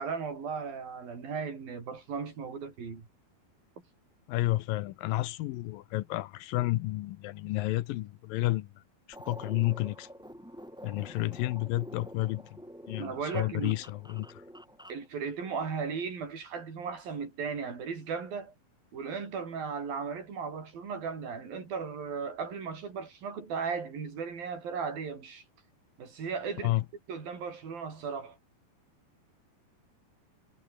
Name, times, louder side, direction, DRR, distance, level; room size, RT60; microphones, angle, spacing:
voice 1, 0.0-3.1 13.0-13.8 14.9-18.5 18.9-25.4 26.0-26.7 27.1-28.4, right 5 dB, 60° right, 6.9 m, -36 dB
voice 2, 4.3-8.7 9.3-10.1 10.8-12.6 12.9-14.4 26.6-26.9, left 17 dB, 75° left, 2.3 m, -31 dB
sound 1, 9.1-15.1, equal, ahead, 4.0 m, -48 dB
omnidirectional pair, 4.7 m